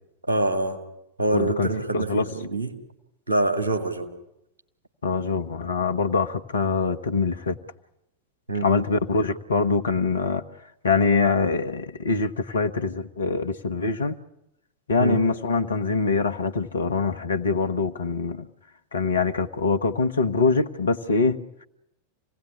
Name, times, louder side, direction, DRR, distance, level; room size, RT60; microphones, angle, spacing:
voice 1, 0.3-0.8 1.2-2.7 3.3-4.1 8.5-8.7 15.0-15.2, right 2 dB, 75° right, 4 dB, 2.8 m, -25 dB
voice 2, 1.3-2.3 5.0-7.6 8.6-10.4 10.8-14.2 14.9-18.5 18.9-21.6, left 4 dB, 70° left, 9 dB, 1.2 m, -24 dB
27.0 x 17.5 x 10.0 m, 0.84 s
figure-of-eight pair, 90°, 0 cm